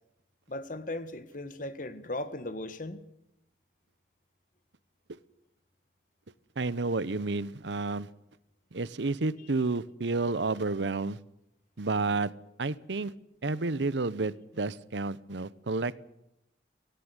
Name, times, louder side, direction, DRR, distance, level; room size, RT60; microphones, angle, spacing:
voice 1, 0.5-3.0, left 1 dB, 45° left, 1.5 m, -37 dB
voice 2, 6.6-8.1 8.7-11.2 11.8-12.3 12.6-13.1 13.4-16.0, right 3 dB, 85° right, 0.8 m, -30 dB
17.5 x 17.0 x 9.7 m
head